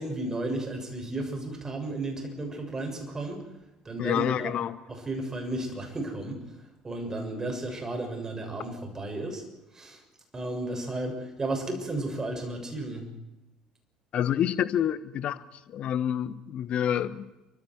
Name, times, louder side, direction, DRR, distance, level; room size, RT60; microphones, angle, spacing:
voice 1, 0.0-3.4 3.8-4.5 4.9-6.4 6.8-9.4 9.7-10.0 10.3-13.1, right 2 dB, 20° right, 3 dB, 6.9 m, -33 dB
voice 2, 4.0-4.8 14.1-15.4 15.7-17.3, left 10 dB, 45° left, 16 dB, 1.2 m, -28 dB
28.5 x 24.5 x 4.7 m, 0.96 s
figure-of-eight pair, 55°, 3 cm